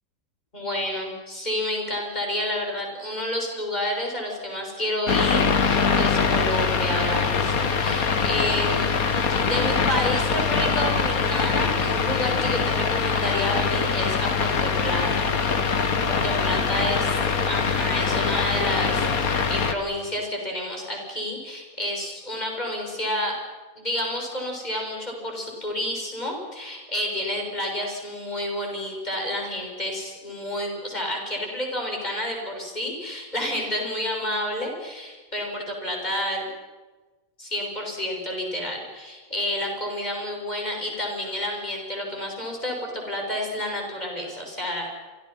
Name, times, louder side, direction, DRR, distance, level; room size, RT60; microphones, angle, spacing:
voice 1, 0.5-9.0 9.4-15.3 16.1-17.0 17.5-23.4 23.8-36.5 37.4-44.9, left 1 dB, 30° left, 1 dB, 7.0 m, -30 dB
sound 1, 5.1-19.7, left 5 dB, 75° left, 2.1 m, -23 dB
30.0 x 26.5 x 5.8 m, 1.3 s
omnidirectional pair, 1.5 m